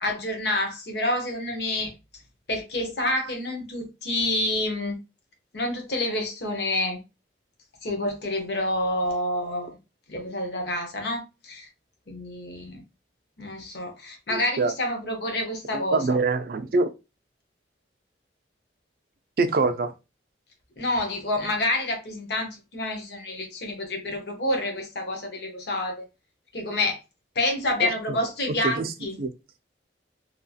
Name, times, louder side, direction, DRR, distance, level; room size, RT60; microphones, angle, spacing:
voice 1, 0.0-1.9 2.5-5.0 5.5-7.0 7.8-9.7 10.1-11.7 12.1-12.8 13.4-16.0 20.8-26.0 26.5-27.0 27.3-29.2, left 1 dB, 60° left, 0.8 m, -28 dB
voice 2, 14.3-14.7 15.7-16.9 19.4-19.9 27.8-28.2 28.6-28.9 29.2-29.3, right 3 dB, 50° right, 0.4 m, -25 dB
2.8 x 2.3 x 2.6 m
head